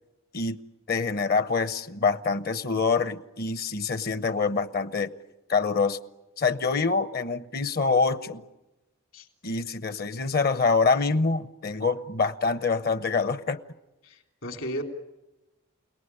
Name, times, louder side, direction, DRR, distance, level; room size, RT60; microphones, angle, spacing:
voice 1, 0.9-5.1 5.5-6.0 6.4-8.4 9.4-13.6, left 4 dB, 50° left, 0.9 m, -25 dB
voice 2, 14.0-14.8, equal, 70° left, 3.5 m, -35 dB
29.0 x 18.5 x 9.9 m
head